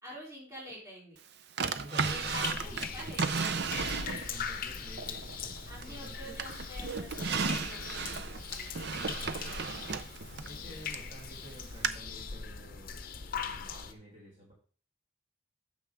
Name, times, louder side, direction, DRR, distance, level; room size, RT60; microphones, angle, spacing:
voice 1, 0.0-1.2 2.0-3.8 4.1-4.8 5.7-9.2 10.4-10.9, equal, 15° right, -5 dB, 3.7 m, -49 dB
voice 2, 1.6-3.3 3.8-6.4 9.0-14.5, right 1 dB, 30° right, -5 dB, 3.3 m, -51 dB
Drawer open or close, 1.6-4.5 5.0-6.0 6.4-11.1 11.8-11.9, right 5 dB, 55° right, 0.6 m, -34 dB
sound 1, 2.0-13.9, left 6 dB, 45° left, 0.8 m, -40 dB
9.2 x 6.8 x 3.6 m, 0.42 s
head